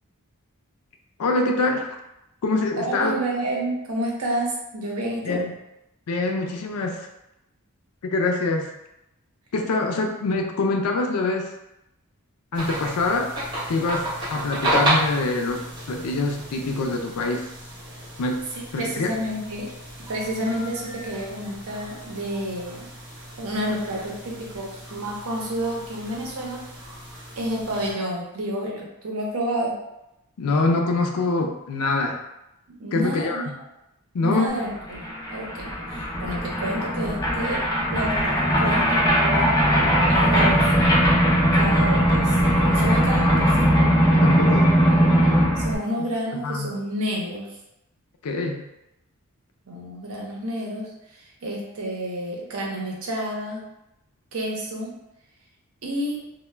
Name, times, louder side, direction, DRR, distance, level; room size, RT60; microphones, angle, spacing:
voice 1, 1.2-1.9 2.4-3.1 5.2-5.5 6.1-7.1 8.0-8.7 9.5-11.5 12.5-13.3 13.7-17.5 18.2-18.4 18.7-19.1 30.4-32.2 32.9-33.4 34.1-34.5 44.2-44.7 46.4-46.7 48.2-48.6, left 3 dB, 85° left, 3 dB, 0.4 m, -24 dB
voice 2, 2.8-5.4 18.5-19.7 20.1-22.9 23.4-26.6 27.4-29.7 32.8-33.5 34.2-39.5 40.1-40.7 41.5-43.6 45.6-47.6 49.7-53.6 54.3-54.9 55.8-56.2, right 1 dB, 75° right, -2 dB, 0.7 m, -30 dB
sound 1, 12.5-27.9, right 1 dB, 20° right, 0.8 m, -32 dB
sound 2, 34.6-34.7 34.9-45.8, equal, 15° left, 0.4 m, -19 dB
2.1 x 2.1 x 3.2 m, 0.89 s
head